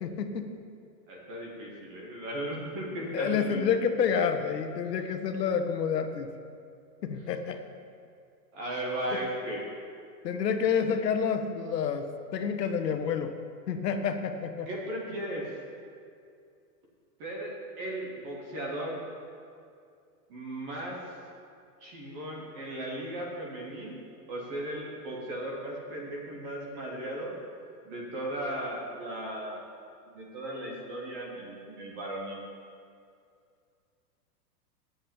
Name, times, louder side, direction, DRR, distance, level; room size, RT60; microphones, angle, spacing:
voice 1, 0.0-0.5 3.1-6.3 7.0-7.6 10.2-13.3 13.7-14.7, left 6 dB, 75° left, 7 dB, 1.3 m, -29 dB
voice 2, 1.1-3.7 4.8-4.9 5.4-5.6 8.5-9.6 14.7-15.5 17.2-19.0 20.3-21.0 21.8-24.0 24.3-27.4 27.8-29.6 30.1-32.4, right 1 dB, 15° right, -2 dB, 0.7 m, -36 dB
8.5 x 7.4 x 8.8 m, 2.4 s
supercardioid pair, 175°, 49 cm